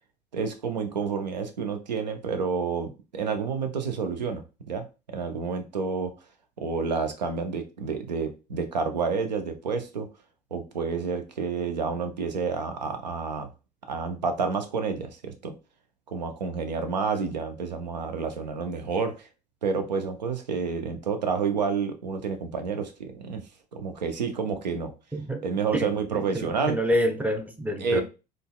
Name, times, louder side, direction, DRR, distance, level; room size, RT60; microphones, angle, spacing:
voice 1, 0.3-6.1 6.6-10.1 10.5-13.5 13.9-15.5 16.1-19.3 19.6-23.4 23.7-24.9 25.4-26.8 27.8-28.0, right 5 dB, 85° right, 0.5 m, -29 dB
voice 2, 25.1-25.4 25.7-25.9 26.1-28.0, equal, 5° right, 0.6 m, -27 dB
3.8 x 2.2 x 2.2 m
figure-of-eight pair, 65°, 21 cm